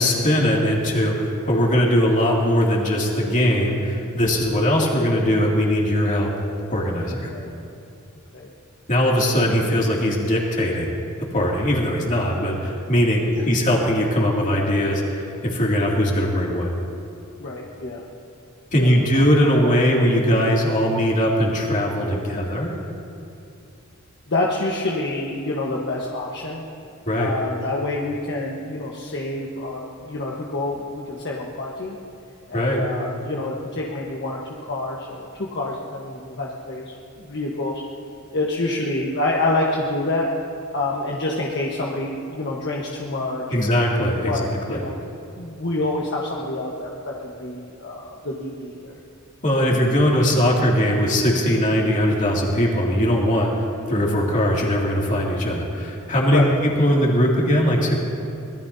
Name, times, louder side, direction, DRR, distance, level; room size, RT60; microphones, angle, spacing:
voice 1, 0.0-6.3 6.7-7.3 8.9-10.9 11.3-16.7 18.7-22.7 27.1-27.3 32.5-32.8 43.5-44.8 49.4-53.5 53.9-58.0, equal, 35° left, -3 dB, 2.5 m, -20 dB
voice 2, 17.4-18.0 18.8-19.2 24.3-26.6 27.2-32.0 32.5-37.8 38.3-40.3 40.7-44.9 45.4-49.0 56.3-56.5, left 2 dB, 55° left, -3 dB, 1.3 m, -27 dB
24.0 x 19.5 x 2.8 m, 2.6 s
head